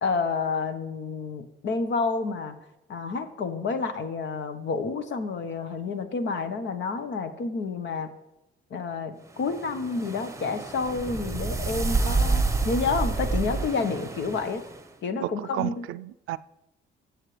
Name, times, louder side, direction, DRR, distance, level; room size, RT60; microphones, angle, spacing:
voice 1, 0.0-2.6 2.9-8.1 8.7-14.6 15.0-15.9, left 4 dB, 65° left, 1.2 m, -29 dB
sound 1, 9.4-14.8, right 3 dB, 15° right, 1.0 m, -28 dB
voice 2, 15.2-16.4, right 15 dB, 90° right, 0.4 m, -32 dB
19.5 x 7.7 x 3.3 m
cardioid pair, 90°, 20 cm